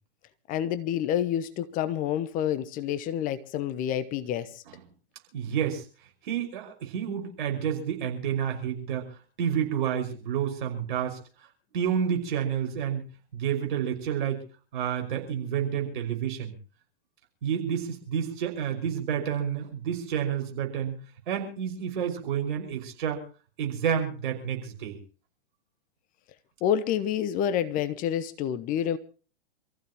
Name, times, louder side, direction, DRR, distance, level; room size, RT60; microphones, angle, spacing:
voice 1, 0.5-4.6 26.6-29.0, left 10 dB, 25° left, 1.0 m, -28 dB
voice 2, 5.3-5.8 6.2-11.2 11.7-13.0 13.3-14.4 14.7-16.5 17.4-21.0 21.3-23.2 23.6-25.0, right 8 dB, 55° right, 5.6 m, -29 dB
27.5 x 15.0 x 3.0 m
figure-of-eight pair, 110°, 31 cm